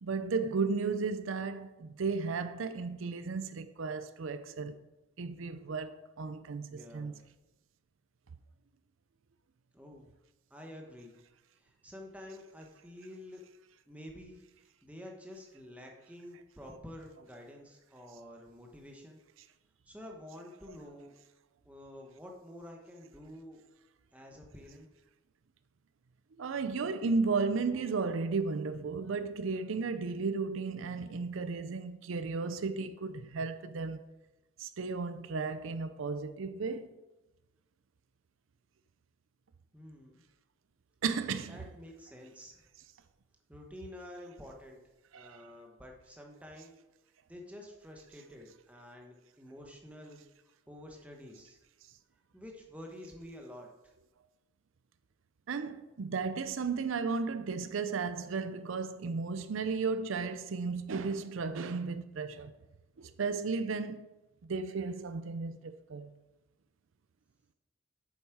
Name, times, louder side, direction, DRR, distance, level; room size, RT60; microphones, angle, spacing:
voice 1, 0.0-4.8 5.2-7.1 26.4-34.0 34.6-37.0 41.0-41.6 45.1-45.5 55.5-62.5 63.0-64.1 64.4-66.1, right 4 dB, 80° right, 0.5 m, -34 dB
voice 2, 6.7-7.2 9.7-10.1 10.5-11.1 11.6-13.4 13.9-14.4 14.8-19.2 19.9-21.1 21.6-23.6 24.1-24.9 39.7-40.2 41.5-42.6 43.5-44.8 45.1-46.7 47.3-50.2 50.7-51.6 52.3-53.7, left 1 dB, 5° right, 1.1 m, -49 dB
8.1 x 7.1 x 4.7 m
head